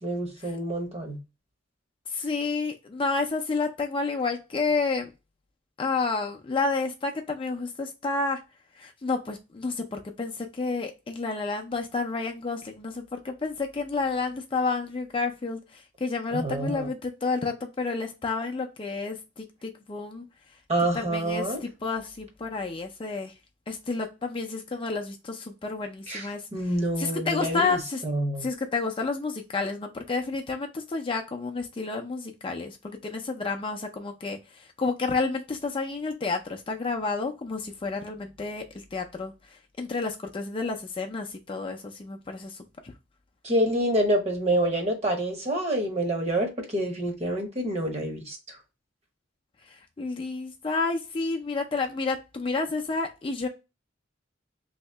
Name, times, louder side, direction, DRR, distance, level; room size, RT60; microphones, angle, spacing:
voice 1, 0.0-1.2 16.3-16.9 20.7-21.6 26.1-26.3 26.5-27.7 28.0-28.5 43.4-48.4, right 1 dB, 35° right, 0.9 m, -27 dB
voice 2, 2.1-5.1 5.8-8.4 8.8-20.2 20.9-23.3 23.7-28.0 28.4-42.6 42.8-42.9 49.7-53.5, left 4 dB, 25° left, 0.4 m, -30 dB
3.1 x 2.8 x 3.3 m
head